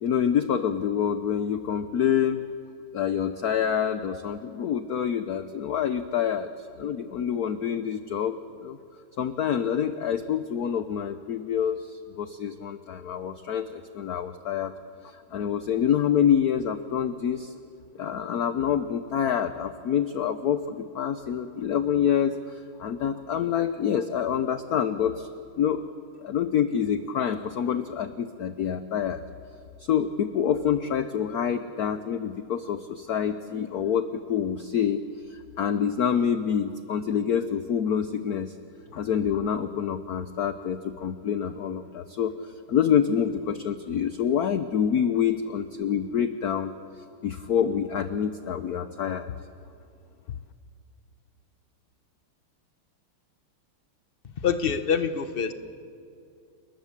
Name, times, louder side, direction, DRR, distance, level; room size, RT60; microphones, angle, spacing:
voice 1, 0.0-2.4 2.9-6.5 6.8-8.8 9.2-14.7 15.0-17.5 18.0-25.3 25.6-25.8 26.2-29.2 29.8-35.0 35.3-38.5 38.9-46.7 47.2-49.3, left 8 dB, 60° left, 10 dB, 1.0 m, -27 dB
voice 2, 54.2-55.5, left 7 dB, 40° left, 10 dB, 0.9 m, -26 dB
29.5 x 20.5 x 7.4 m, 2.4 s
omnidirectional pair, 2.4 m